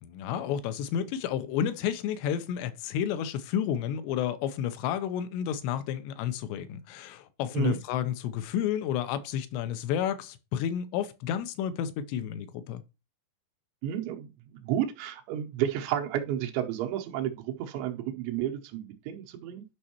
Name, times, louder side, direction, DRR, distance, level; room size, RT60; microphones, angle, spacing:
voice 1, 0.0-12.8, left 9 dB, 85° left, 2.8 m, -31 dB
voice 2, 13.8-19.6, right 11 dB, 85° right, 3.3 m, -31 dB
11.0 x 5.4 x 2.9 m
omnidirectional pair, 5.0 m